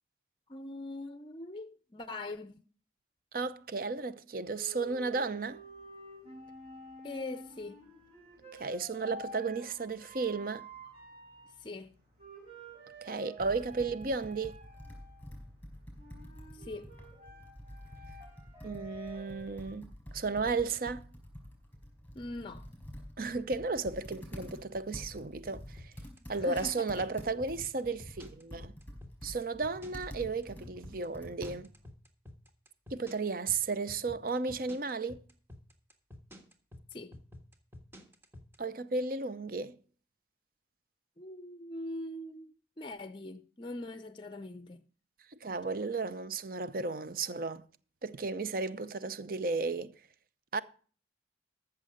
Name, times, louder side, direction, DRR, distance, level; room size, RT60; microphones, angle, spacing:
voice 1, 0.5-2.6 7.0-7.8 11.6-11.9 16.6-16.9 22.1-22.7 26.4-27.1 36.9-37.2 41.2-44.9, left 2 dB, 25° left, 0.6 m, -42 dB
voice 2, 3.3-5.6 8.5-10.7 13.0-14.6 18.6-19.9 20.1-21.0 23.2-25.9 26.3-28.7 29.2-31.7 32.9-35.2 38.6-39.8 45.4-47.6 48.0-49.9 50.5-50.6, right 4 dB, 50° right, 0.7 m, -34 dB
sound 1, 4.4-19.7, right 1 dB, 35° right, 5.6 m, -51 dB
Computer keyboard, 13.4-31.9, equal, 10° left, 4.5 m, -48 dB
sound 2, 25.8-38.6, left 1 dB, 15° right, 1.5 m, -50 dB
14.0 x 6.8 x 5.1 m
head